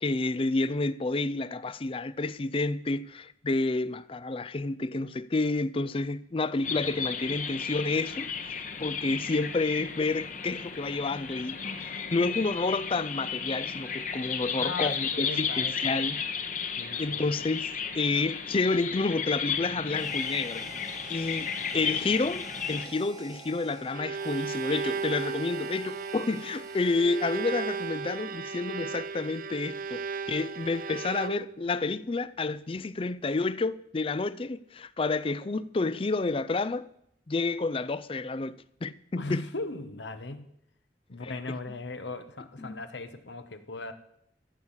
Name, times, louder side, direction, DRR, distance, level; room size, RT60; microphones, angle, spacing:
voice 1, 0.0-16.2 17.0-20.7 21.1-36.9 37.3-39.5 41.2-41.3 42.6-42.8, left 3 dB, 30° left, 0.4 m, -30 dB
sound 1, 6.6-22.9, left 6 dB, 45° left, 1.3 m, -34 dB
voice 2, 14.6-16.0 16.8-17.3 21.6-22.0 39.2-40.5 41.1-43.9, left 3 dB, 80° left, 1.2 m, -38 dB
Harmonica, 19.9-28.5, right 3 dB, 20° right, 1.4 m, -49 dB
Bowed string instrument, 23.6-31.7, right 5 dB, 50° right, 0.5 m, -35 dB
14.0 x 8.1 x 7.3 m
head